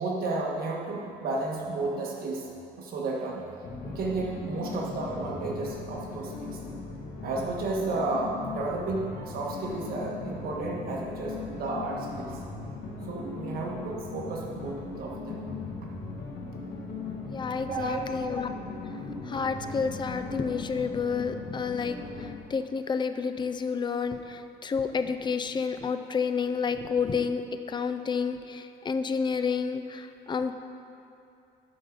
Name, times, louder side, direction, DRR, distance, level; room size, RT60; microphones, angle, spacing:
voice 1, 0.0-2.5 2.8-6.6 7.2-12.4 13.1-15.4 17.6-18.3, right 3 dB, 60° right, -2 dB, 1.7 m, -32 dB
sound 1, 3.6-22.4, left 3 dB, 60° left, 1.7 m, -39 dB
voice 2, 17.3-18.5 19.1-27.4 27.7-30.5, left 5 dB, 25° left, 9 dB, 0.5 m, -30 dB
11.0 x 4.9 x 5.4 m, 2.6 s
cardioid pair, 110°, 17 cm